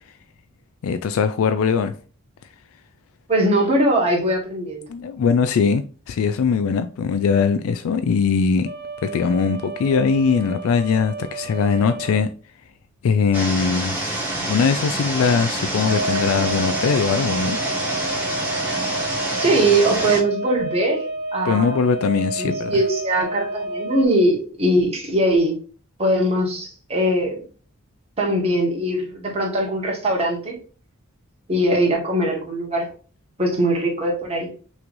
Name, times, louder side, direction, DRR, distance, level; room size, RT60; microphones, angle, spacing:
voice 1, 0.8-1.9 4.9-8.7 9.0-12.3 13.0-17.6 21.4-22.8, left 5 dB, 70° left, 0.3 m, -21 dB
voice 2, 3.3-4.8 19.4-21.0 21.3-21.8 22.4-25.6 26.0-27.4 28.2-30.6 31.5-32.9 33.4-34.5, right 1 dB, 30° right, 1.3 m, -21 dB
sound 1, 8.6-12.2 15.8-24.0, right 2 dB, 50° right, 1.1 m, -30 dB
sound 2, 13.3-20.2, right 2 dB, 10° right, 1.4 m, -27 dB
5.9 x 3.2 x 2.5 m
head